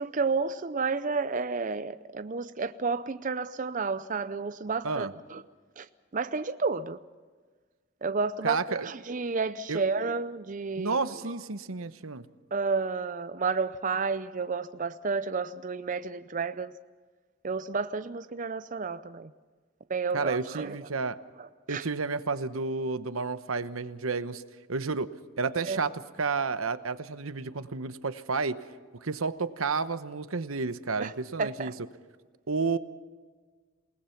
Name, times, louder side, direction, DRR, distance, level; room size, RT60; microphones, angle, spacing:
voice 1, 0.0-5.4 5.8-5.9 6.1-7.0 8.0-11.0 12.5-16.7 17.4-19.3 19.9-20.8 21.4-21.8 25.6-25.8 31.0-31.1 31.4-31.7, right 4 dB, 40° right, 0.5 m, -31 dB
voice 2, 8.4-8.9 9.7-9.8 10.8-12.2 20.1-21.2 21.7-24.4 24.7-25.1 25.4-25.9 26.2-28.6 29.0-31.7 32.5-32.8, right 4 dB, 85° right, 1.0 m, -31 dB
28.5 x 19.0 x 5.8 m
head